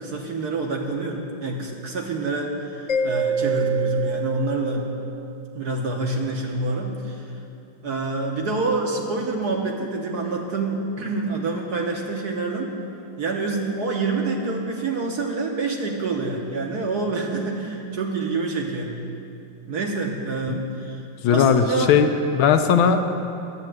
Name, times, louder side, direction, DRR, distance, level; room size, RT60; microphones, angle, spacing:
voice 1, 0.0-4.9 5.5-7.2 7.8-12.8 13.2-18.9 19.7-21.0 21.3-22.0, right 3 dB, 55° right, 1 dB, 1.2 m, -27 dB
Mallet percussion, 2.9-5.4, right 4 dB, 45° left, 1.2 m, -26 dB
voice 2, 21.2-23.0, left 7 dB, 75° left, 7 dB, 1.4 m, -18 dB
9.9 x 7.2 x 9.2 m, 2.6 s
omnidirectional pair, 2.4 m